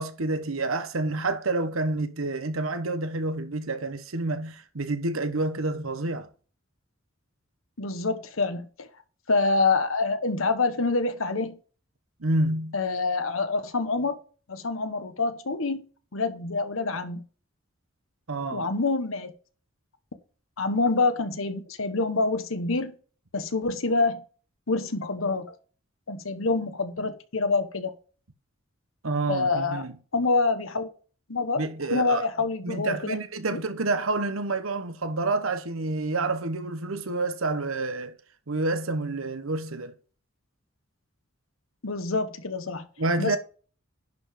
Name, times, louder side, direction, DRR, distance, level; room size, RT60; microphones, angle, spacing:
voice 1, 0.0-6.3 12.2-12.7 18.3-18.7 29.0-29.9 31.6-32.3 32.6-38.2 38.5-39.9 43.0-43.4, right 2 dB, 90° right, 1.1 m, -28 dB
voice 2, 7.8-8.9 9.3-11.6 12.7-14.2 14.5-15.9 16.1-17.2 18.5-19.3 20.6-22.9 23.3-24.2 24.7-25.6 26.1-27.9 29.3-29.8 30.1-30.9 31.3-31.6 31.9-33.2 33.5-33.6 41.8-42.9 43.2-43.4, left 3 dB, 85° left, 1.2 m, -26 dB
11.0 x 4.8 x 5.1 m
head